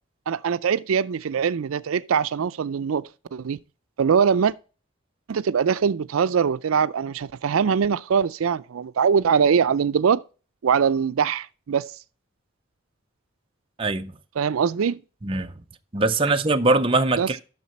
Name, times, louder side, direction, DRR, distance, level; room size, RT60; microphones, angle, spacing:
voice 1, 0.3-3.6 4.0-4.5 5.3-10.2 10.6-11.9 14.4-15.0 17.2-17.3, right 6 dB, 90° right, 0.4 m, -22 dB
voice 2, 13.8-14.1 15.2-15.5 15.9-17.4, right 2 dB, 25° right, 0.6 m, -22 dB
10.5 x 6.6 x 4.1 m
head